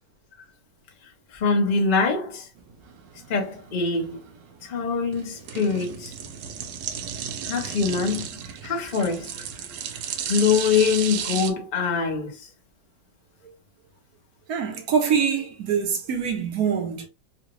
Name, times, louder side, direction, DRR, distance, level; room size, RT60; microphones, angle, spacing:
voice 1, 1.3-2.5 3.3-4.2 4.6-6.1 7.4-8.3 8.6-9.3 10.3-12.5, left 5 dB, 40° left, 0.8 m, -24 dB
sound 1, 2.6-11.5, right 8 dB, 75° right, 1.3 m, -34 dB
voice 2, 14.5-17.1, right 7 dB, 60° right, 1.2 m, -24 dB
3.9 x 2.4 x 2.9 m
omnidirectional pair, 2.0 m